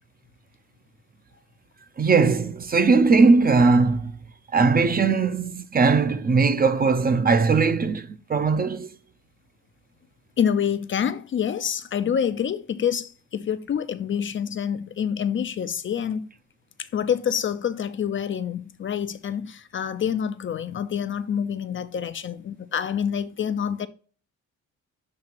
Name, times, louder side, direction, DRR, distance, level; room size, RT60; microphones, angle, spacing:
voice 1, 2.0-4.1 4.5-8.9, right 4 dB, 30° right, 0.6 m, -19 dB
voice 2, 10.4-16.3 16.8-23.9, left 8 dB, 40° left, 0.5 m, -27 dB
7.5 x 2.8 x 4.4 m
cardioid pair, 90°, 30 cm